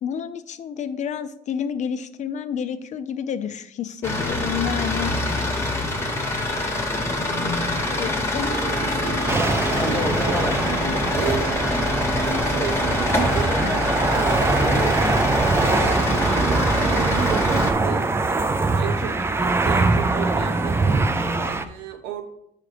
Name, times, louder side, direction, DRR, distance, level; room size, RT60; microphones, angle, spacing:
voice 1, 0.0-5.1 7.9-8.6, left 8 dB, 45° left, 12 dB, 0.5 m, -29 dB
sound 1, 4.0-17.7, left 1 dB, 15° left, 1.0 m, -24 dB
voice 2, 8.4-9.6 9.8-11.5 12.3-15.0 15.6-21.1 21.4-22.2, right 7 dB, 85° right, 6 dB, 0.9 m, -33 dB
sound 2, 9.3-21.7, right 3 dB, 15° right, 0.4 m, -23 dB
6.9 x 4.9 x 3.3 m, 0.77 s
cardioid pair, 110°, 17 cm